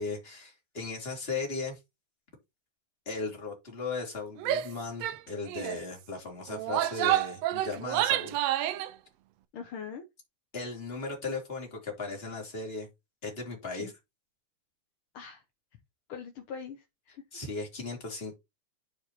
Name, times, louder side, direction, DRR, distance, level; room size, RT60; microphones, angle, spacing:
voice 1, 0.0-1.8 3.1-8.4 10.5-12.9 13.2-13.9 17.3-18.3, left 3 dB, 20° left, 2.5 m, -37 dB
Female speech woman speaking / Yell, 4.4-4.7 5.0-5.2 5.5-5.8 6.5-8.9, right 13 dB, 90° right, 1.5 m, -29 dB
voice 2, 9.5-10.0 13.7-13.9 15.1-15.4 16.1-17.2, left 6 dB, 70° left, 1.3 m, -42 dB
11.5 x 4.7 x 2.9 m
omnidirectional pair, 3.5 m